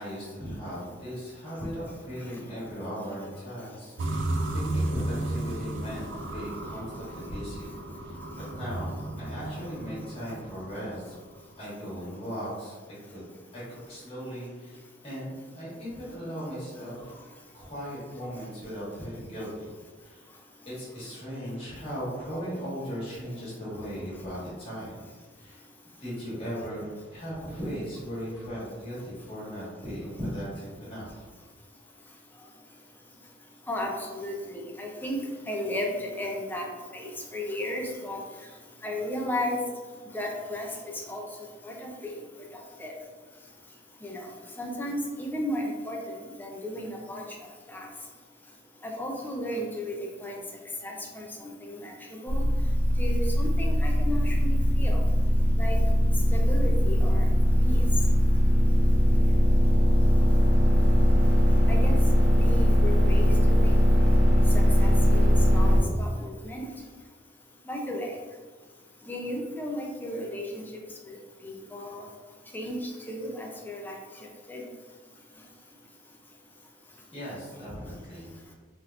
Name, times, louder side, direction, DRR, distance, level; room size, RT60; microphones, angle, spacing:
voice 1, 0.0-7.7 8.0-8.2 8.6-11.2 11.6-12.8 13.1-13.2 13.5-17.1 17.5-19.7 20.0-20.3 20.6-25.0 25.4-25.6 26.0-31.2 77.1-78.3, equal, 30° left, -8 dB, 1.5 m, -37 dB
sound 1, 4.0-11.1, right 1 dB, 70° right, 0.4 m, -33 dB
voice 2, 33.7-35.2 35.5-36.7 36.9-38.2 38.8-39.6 40.1-40.7 41.1-41.2 41.6-42.1 42.8-42.9 44.0-44.3 44.6-47.3 47.7-47.9 48.8-49.9 50.2-50.4 50.8-52.5 53.0-55.0 55.6-55.8 56.3-57.2 57.6-57.8 61.7-61.9 62.4-63.3 63.6-63.8 64.5-66.7 67.7-68.1 69.1-70.6 71.1-71.2 71.4-72.1 72.5-74.0 74.5-74.6, left 1 dB, 10° left, 0 dB, 0.4 m, -34 dB
sound 2, 52.3-65.8, equal, 90° right, 1.0 m, -20 dB
3.3 x 2.8 x 2.4 m, 1.4 s
head